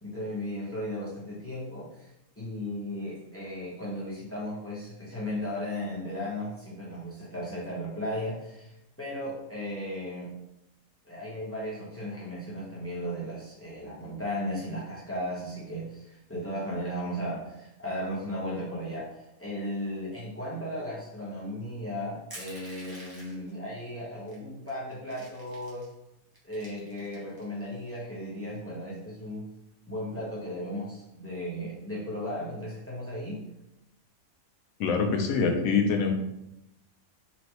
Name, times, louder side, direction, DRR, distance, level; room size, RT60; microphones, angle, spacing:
voice 1, 0.0-2.1 2.4-10.3 11.0-25.9 26.4-29.4 29.9-33.4, equal, 10° left, -6 dB, 1.0 m, -36 dB
Crushing, 22.3-23.5 24.3-24.4 24.7-25.9 26.3-27.4, right 1 dB, 20° right, 0.8 m, -47 dB
voice 2, 34.8-36.1, left 5 dB, 80° left, 4 dB, 1.1 m, -24 dB
4.2 x 3.1 x 2.9 m, 0.85 s
omnidirectional pair, 1.4 m